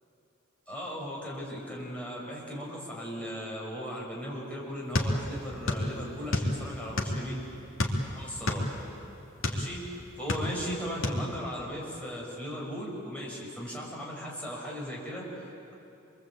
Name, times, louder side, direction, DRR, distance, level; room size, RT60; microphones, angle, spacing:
voice 1, 0.7-7.4 8.0-8.7 9.5-15.7, equal, 5° left, -4 dB, 5.7 m, -37 dB
sound 1, 4.9-5.9 6.1-7.3 7.8-9.7 10.1-10.7 11.0-11.2, left 1 dB, 80° left, 2.8 m, -28 dB
27.0 x 23.5 x 8.5 m, 2.8 s
head